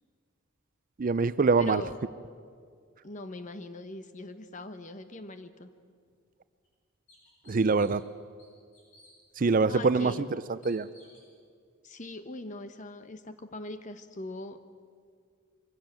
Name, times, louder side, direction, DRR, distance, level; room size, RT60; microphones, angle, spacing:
voice 1, 1.0-1.8 7.5-8.0 9.4-10.1 10.6-10.9, right 4 dB, 40° right, 15 dB, 0.4 m, -24 dB
voice 2, 1.6-2.0 3.0-5.7 9.6-10.3 11.8-14.6, left 2 dB, 35° left, 10 dB, 1.0 m, -41 dB
sound 1, 6.0-6.1 6.6-6.7 7.1-8.1 8.4-9.1 9.8-9.9 10.6-11.3, left 1 dB, 85° left, 7.5 m, -58 dB
23.5 x 16.0 x 7.6 m, 2.1 s
head